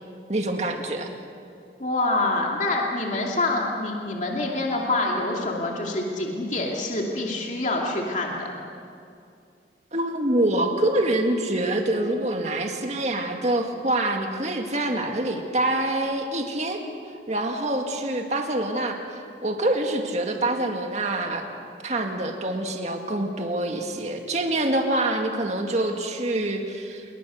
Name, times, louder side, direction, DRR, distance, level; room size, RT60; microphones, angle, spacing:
voice 1, 0.3-1.1 9.9-16.8 17.3-21.4 21.8-27.1, right 1 dB, 40° right, 3 dB, 2.0 m, -26 dB
voice 2, 1.8-8.5, left 2 dB, 45° left, -1 dB, 2.6 m, -26 dB
27.5 x 23.0 x 6.4 m, 2.4 s
head